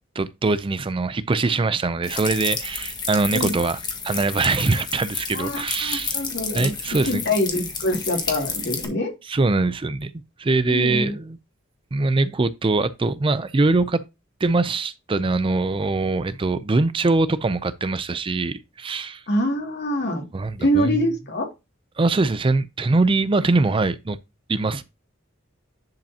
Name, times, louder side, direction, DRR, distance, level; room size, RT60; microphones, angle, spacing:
voice 1, 0.2-3.8 4.0-6.2 6.5-7.2 7.6-7.7 9.3-10.1 10.4-11.4 11.9-14.0 14.4-19.2 20.3-21.0 22.0-24.2 24.5-24.8, right 3 dB, 25° right, 0.4 m, -22 dB
sound 1, 2.0-8.9, left 5 dB, 20° left, 1.6 m, -31 dB
voice 2, 5.3-6.7 7.1-9.1 10.7-11.1 19.3-20.3 20.6-21.5, equal, 60° left, 2.4 m, -24 dB
10.5 x 5.1 x 2.8 m
head